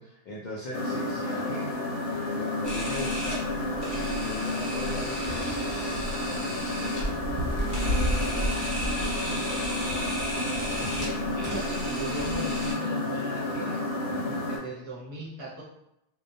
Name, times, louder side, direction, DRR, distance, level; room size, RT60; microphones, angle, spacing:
voice 1, 0.0-1.8 2.0-7.3 8.2-9.4 14.1-14.5, left 1 dB, 60° left, -5 dB, 0.5 m, -41 dB
sound 1, 0.7-14.6, left 2 dB, 80° left, 0.9 m, -31 dB
Camera, 2.6-12.7, equal, 20° left, 0.6 m, -36 dB
Bird, 6.9-10.1 10.6-10.8 11.0-11.3 12.1-12.2, equal, 70° right, 0.8 m, -30 dB
voice 2, 10.8-13.8 14.5-15.6, right 1 dB, 35° right, -5 dB, 0.6 m, -38 dB
2.2 x 2.1 x 2.6 m, 0.84 s
omnidirectional pair, 1.2 m